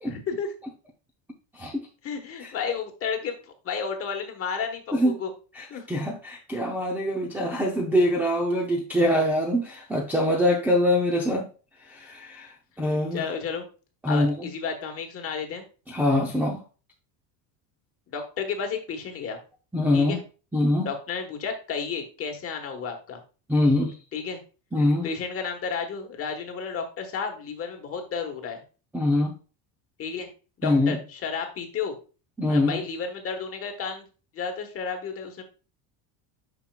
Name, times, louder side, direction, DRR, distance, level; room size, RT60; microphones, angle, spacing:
voice 1, 0.0-0.5 2.0-5.3 5.7-5.8 12.9-13.7 14.1-15.7 18.1-19.4 19.9-20.2 20.8-23.2 24.1-24.4 25.0-28.6 30.0-30.3 30.6-31.9 32.5-34.0 34.3-35.4, left 6 dB, 30° left, 5 dB, 1.2 m, -32 dB
voice 2, 1.5-1.9 2.4-2.5 4.9-5.2 5.5-11.5 11.8-13.2 14.0-14.5 15.9-16.6 19.7-20.2 20.5-20.9 23.5-23.9 24.7-25.1 28.9-29.3 30.6-31.0 32.4-32.8, left 1 dB, 5° right, -4 dB, 0.6 m, -24 dB
9.3 x 6.0 x 2.3 m, 0.34 s
cardioid pair, 180°, 46 cm